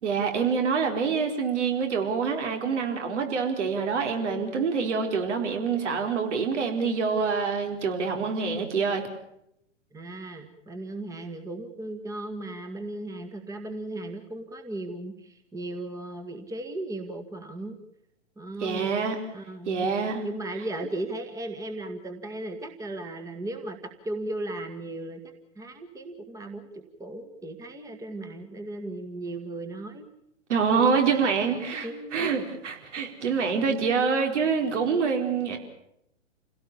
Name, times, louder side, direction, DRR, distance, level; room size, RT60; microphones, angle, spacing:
voice 1, 0.0-9.0 18.6-19.2 19.6-20.2 30.5-35.6, right 5 dB, 65° right, 4 dB, 4.4 m, -26 dB
voice 2, 9.9-17.8 18.4-18.9 19.3-19.9 20.2-25.2 25.6-30.1 30.8-32.3, right 2 dB, 10° right, 6 dB, 1.8 m, -36 dB
28.5 x 17.0 x 7.0 m, 0.78 s
hypercardioid pair, 120°, 38 cm